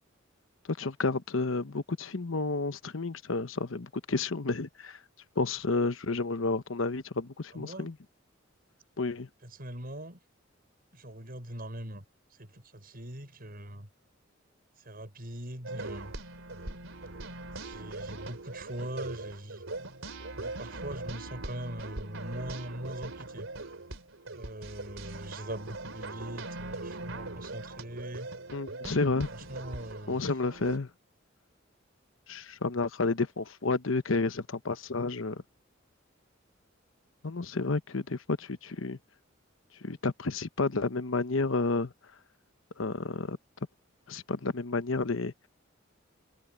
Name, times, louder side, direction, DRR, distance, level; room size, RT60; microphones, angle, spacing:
voice 1, 0.6-5.0 5.4-8.0 9.0-9.3 28.5-29.3 30.1-30.9 32.3-35.4 37.2-39.0 39.8-41.9 42.8-43.4 44.1-45.5, left 3 dB, 75° left, 1.0 m, -31 dB
voice 2, 7.5-7.9 9.4-10.2 10.9-12.0 12.4-13.9 14.9-16.1 17.6-19.6 20.4-23.5 24.3-28.3 29.3-30.3, right 1 dB, 50° right, 6.8 m, -41 dB
sound 1, 15.6-30.8, right 2 dB, 80° right, 3.5 m, -41 dB
head